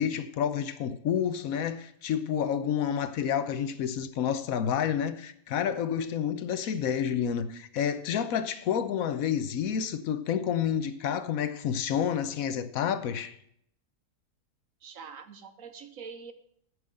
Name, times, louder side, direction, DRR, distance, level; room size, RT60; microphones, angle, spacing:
voice 1, 0.0-13.4, left 8 dB, 65° left, 1.1 m, -29 dB
voice 2, 14.8-16.3, right 6 dB, 60° right, 1.1 m, -44 dB
9.0 x 6.3 x 7.6 m
omnidirectional pair, 1.7 m